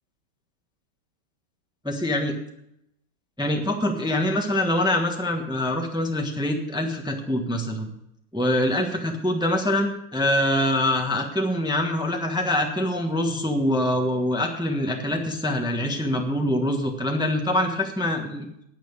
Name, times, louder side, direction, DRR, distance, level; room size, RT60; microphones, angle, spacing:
voice 1, 1.8-2.3 3.4-7.9 8.3-18.5, left 1 dB, 5° right, 3 dB, 0.8 m, -24 dB
10.5 x 8.8 x 7.0 m, 0.78 s
omnidirectional pair, 2.4 m